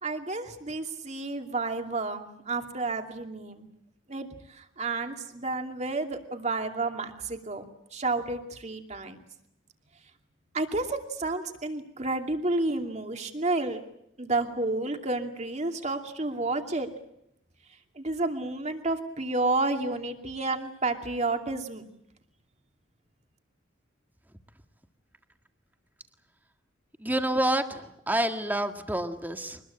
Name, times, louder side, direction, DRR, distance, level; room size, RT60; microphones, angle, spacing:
voice 1, 0.0-3.7 4.1-7.6 7.9-9.2 10.5-13.8 14.2-16.9 18.0-21.9, right 2 dB, 35° right, 5 dB, 2.6 m, -31 dB
voice 2, 27.0-29.6, right 1 dB, 10° right, 6 dB, 1.7 m, -28 dB
24.5 x 20.5 x 8.6 m, 0.77 s
head